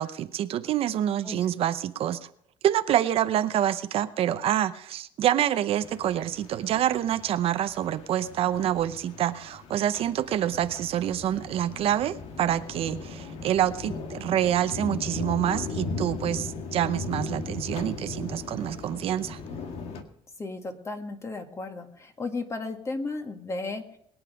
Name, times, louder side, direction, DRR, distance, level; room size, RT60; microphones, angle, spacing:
voice 1, 0.0-2.3 2.6-19.4, right 11 dB, 60° right, 11 dB, 0.7 m, -27 dB
sound 1, 5.8-20.0, left 4 dB, 70° left, 1.9 m, -38 dB
voice 2, 20.4-24.0, left 3 dB, 25° left, 5 dB, 2.0 m, -34 dB
22.0 x 9.0 x 5.2 m, 0.70 s
cardioid pair, 115°, 11 cm